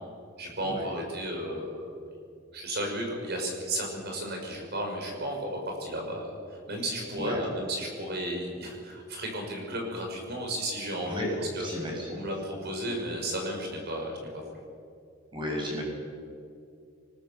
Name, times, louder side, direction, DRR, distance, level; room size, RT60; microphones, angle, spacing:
voice 1, 0.4-2.1 2.5-11.3 11.6-14.6, right 1 dB, 50° right, 1 dB, 5.7 m, -34 dB
voice 2, 11.0-12.2 15.3-15.8, left 1 dB, 25° right, -1 dB, 7.1 m, -33 dB
24.0 x 20.5 x 6.9 m, 2.5 s
head